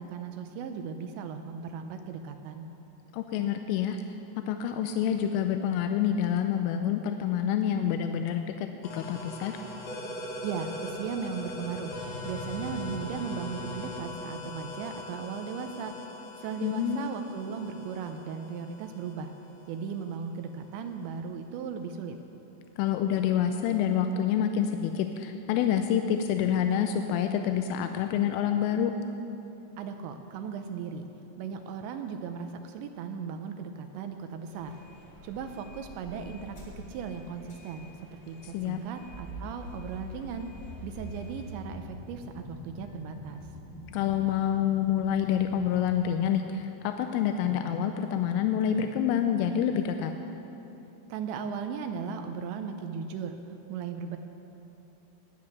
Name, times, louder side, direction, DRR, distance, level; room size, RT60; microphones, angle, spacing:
voice 1, 0.0-2.7 10.4-15.9 16.4-19.3 19.7-22.2 29.8-31.0 31.4-34.8 35.2-40.5 40.8-43.4 51.1-54.2, right 6 dB, 80° right, 6 dB, 2.7 m, -37 dB
voice 2, 3.1-4.0 4.4-8.7 8.9-9.6 16.6-17.1 22.8-28.9 38.5-38.8 43.9-50.1, left 9 dB, 85° left, 6 dB, 3.2 m, -27 dB
sound 1, 8.8-20.2, left 2 dB, 65° left, 1.9 m, -41 dB
sound 2, 34.4-41.5, left 1 dB, 40° left, 2.0 m, -50 dB
sound 3, 39.1-46.0, equal, 10° left, 1.4 m, -45 dB
18.0 x 9.6 x 5.9 m, 3.0 s
omnidirectional pair, 5.7 m